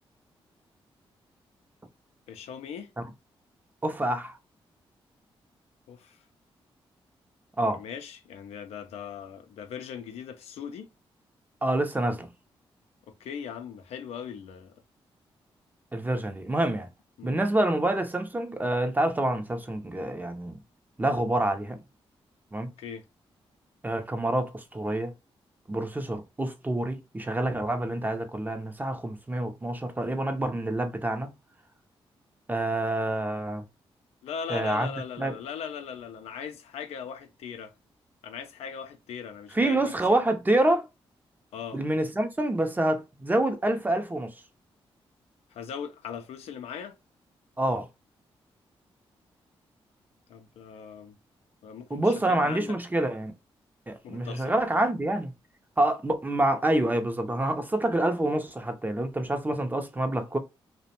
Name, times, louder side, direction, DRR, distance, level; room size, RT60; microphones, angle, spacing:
voice 1, 2.3-2.9 5.9-6.2 7.6-10.9 13.1-14.7 17.2-17.4 22.8-23.0 34.2-37.7 38.2-40.2 41.5-41.8 45.5-47.0 50.3-51.1 51.6-52.8 54.0-54.5, left 7 dB, 85° left, 0.4 m, -39 dB
voice 2, 3.8-4.4 7.6-7.8 11.6-12.3 15.9-16.9 17.2-20.6 21.0-21.8 22.5-22.7 23.8-25.1 25.7-31.3 32.5-33.6 34.5-34.9 35.2-35.3 39.5-40.9 41.7-44.3 47.6-47.9 51.9-53.3 53.9-55.3 55.8-60.4, right 1 dB, 15° right, 0.5 m, -27 dB
2.5 x 2.1 x 2.7 m
cardioid pair, 65°, 10 cm